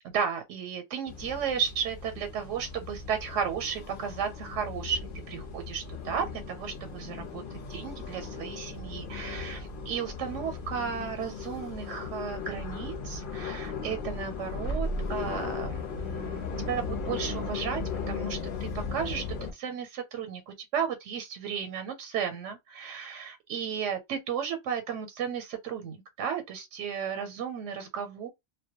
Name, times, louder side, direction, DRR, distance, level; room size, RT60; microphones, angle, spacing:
voice 1, 0.1-5.0 5.3-17.8 18.1-19.2 19.5-28.3, right 7 dB, 85° right, 0.9 m, -34 dB
sound 1, 1.1-19.5, left 4 dB, 55° left, 0.7 m, -37 dB
2.1 x 2.1 x 2.7 m
omnidirectional pair, 1.2 m